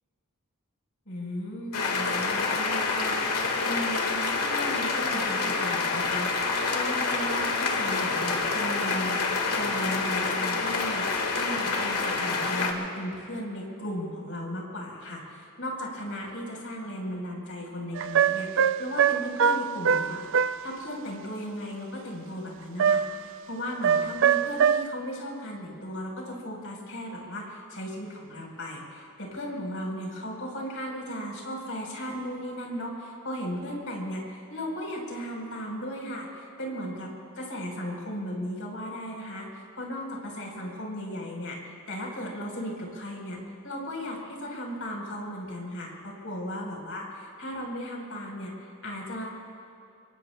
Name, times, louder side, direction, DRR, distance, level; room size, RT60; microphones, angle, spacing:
voice 1, 1.1-6.3 6.7-9.2 9.5-11.1 11.3-37.1 37.4-39.5 39.8-43.4 43.6-49.2, equal, 65° left, -1 dB, 4.2 m, -36 dB
sound 1, 1.7-12.7, left 4 dB, 90° left, 1.7 m, -27 dB
sound 2, 18.0-20.6 22.8-23.3 23.8-24.8, right 7 dB, 55° right, 0.3 m, -23 dB
25.0 x 24.0 x 2.3 m, 2.5 s
head